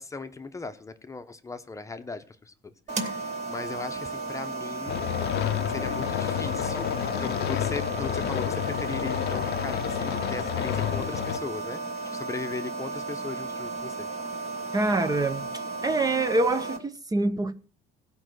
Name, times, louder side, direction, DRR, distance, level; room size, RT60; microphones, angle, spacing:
voice 1, 0.0-5.0 5.4-11.8 12.0-14.1, left 4 dB, 20° left, 0.9 m, -38 dB
sound 1, 2.9-16.8, right 3 dB, 45° right, 2.7 m, -34 dB
sound 2, 4.9-11.4, left 13 dB, 80° left, 0.6 m, -30 dB
voice 2, 14.7-17.5, right 2 dB, 20° right, 0.8 m, -26 dB
16.0 x 5.5 x 6.3 m
cardioid pair, 110°, 17 cm